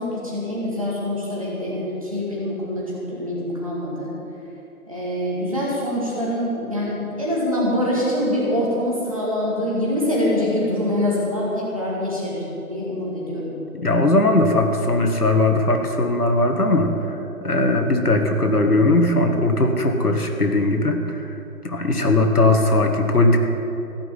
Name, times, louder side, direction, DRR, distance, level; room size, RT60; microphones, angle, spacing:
voice 1, 0.0-4.1 4.9-13.5, left 1 dB, 25° right, -6 dB, 2.2 m, -24 dB
voice 2, 13.8-21.3 21.6-23.4, left 2 dB, 80° left, 4 dB, 1.8 m, -19 dB
15.5 x 5.9 x 9.1 m, 2.9 s
figure-of-eight pair, 175°, 45 cm